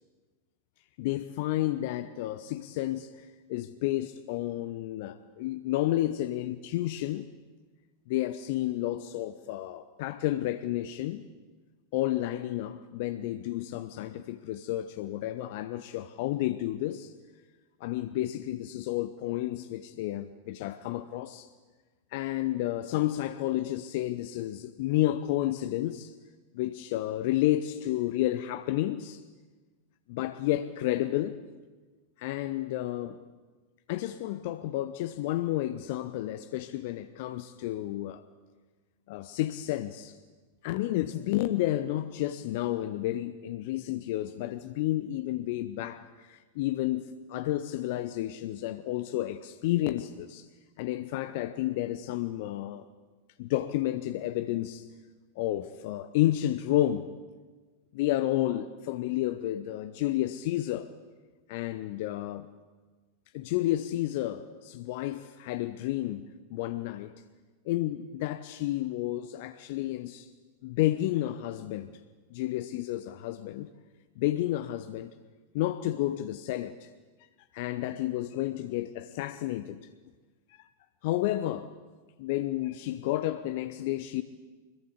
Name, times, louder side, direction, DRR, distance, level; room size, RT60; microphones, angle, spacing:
voice 1, 1.0-7.3 8.1-11.2 11.9-17.1 17.8-21.5 22.1-26.1 26.5-29.2 30.1-31.4 32.2-33.2 33.9-38.2 39.1-40.2 40.6-50.5 50.8-52.8 53.4-54.9 55.4-57.1 57.9-60.9 61.5-62.5 63.3-67.1 67.6-70.3 70.6-72.0 72.3-73.7 74.2-75.1 75.5-76.9 77.5-79.9 80.6-80.7 81.0-81.8 82.2-84.2, left 14 dB, 50° left, 0.9 m, -31 dB
24.5 x 22.0 x 8.6 m
figure-of-eight pair, 90°, 0 cm